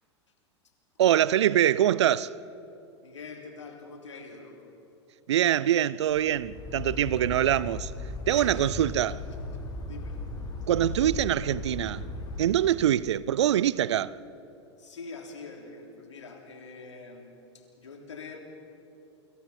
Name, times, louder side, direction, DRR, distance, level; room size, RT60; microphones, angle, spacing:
voice 1, 1.0-2.3 5.3-7.9 8.3-9.2 10.7-12.1 12.4-14.1, right 11 dB, 70° right, 0.6 m, -24 dB
voice 2, 3.0-4.8 8.3-10.2 14.8-18.5, left 4 dB, 85° left, 3.5 m, -45 dB
sound 1, 6.1-12.4, left 2 dB, 25° left, 4.2 m, -37 dB
sound 2, 10.7-13.0, right 8 dB, 50° right, 1.5 m, -43 dB
29.5 x 25.0 x 4.3 m
hypercardioid pair, 95°, 15 cm